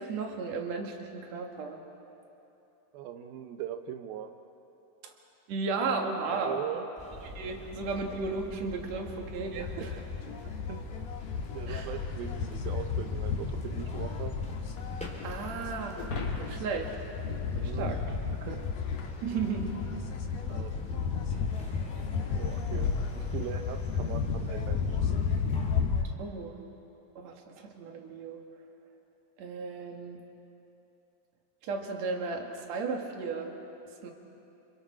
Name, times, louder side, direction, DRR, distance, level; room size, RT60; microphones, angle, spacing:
voice 1, 0.0-1.8 5.5-6.6 7.3-9.9 11.7-11.9 15.2-16.0 16.4-16.9 17.5-18.0 19.2-19.8 26.2-26.6 27.2-28.4 29.4-30.2 31.6-33.5 34.0-34.1, right 4 dB, 55° right, 2 dB, 2.8 m, -34 dB
voice 2, 2.9-4.3 6.3-6.9 8.9-9.0 9.6-10.0 10.7-10.8 11.5-14.4 17.5-18.7 20.5-21.1 22.4-25.0, right 9 dB, 85° right, 7 dB, 2.7 m, -40 dB
sound 1, 7.0-25.8, left 1 dB, ahead, 2.1 m, -44 dB
sound 2, 9.5-26.0, left 6 dB, 75° left, 3.2 m, -33 dB
sound 3, 15.9-18.5, left 3 dB, 45° left, 2.7 m, -39 dB
30.0 x 28.0 x 4.4 m, 2.9 s
omnidirectional pair, 4.2 m